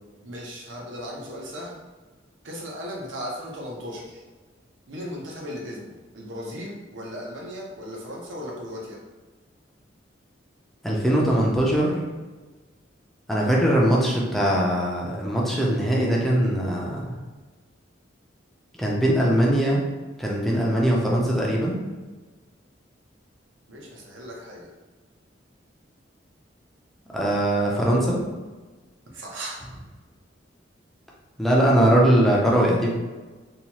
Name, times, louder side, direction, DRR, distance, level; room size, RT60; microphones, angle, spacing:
voice 1, 0.2-1.8 2.4-4.2 4.9-9.0 23.7-24.7 29.1-29.6, equal, 75° right, -3 dB, 0.7 m, -36 dB
voice 2, 10.8-12.0 13.3-17.1 18.8-19.8 20.2-21.8 27.1-28.2 31.4-32.9, right 1 dB, ahead, -4 dB, 0.4 m, -21 dB
2.8 x 2.2 x 2.9 m, 1.3 s
head